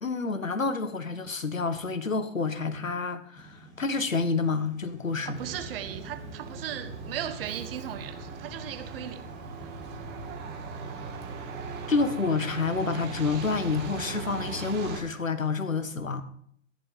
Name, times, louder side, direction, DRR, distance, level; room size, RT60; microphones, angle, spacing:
voice 1, 0.0-5.4 11.9-16.2, left 4 dB, 85° left, 10 dB, 1.5 m, -28 dB
sound 1, 3.4-12.2, right 2 dB, 10° left, 4.3 m, -52 dB
voice 2, 5.2-9.2, right 10 dB, 45° right, 10 dB, 1.5 m, -37 dB
Truck, 5.3-15.0, right 4 dB, 25° right, 2.4 m, -39 dB
14.0 x 11.0 x 3.8 m, 0.64 s
figure-of-eight pair, 115°, 39 cm